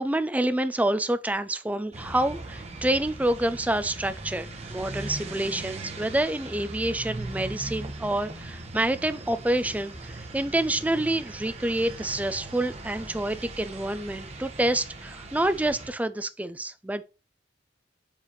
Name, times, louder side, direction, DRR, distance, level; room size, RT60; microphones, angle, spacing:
voice 1, 0.0-17.0, right 1 dB, 10° right, 0.4 m, -27 dB
sound 1, 1.9-15.9, right 2 dB, 35° right, 1.1 m, -39 dB
7.3 x 3.4 x 4.2 m
head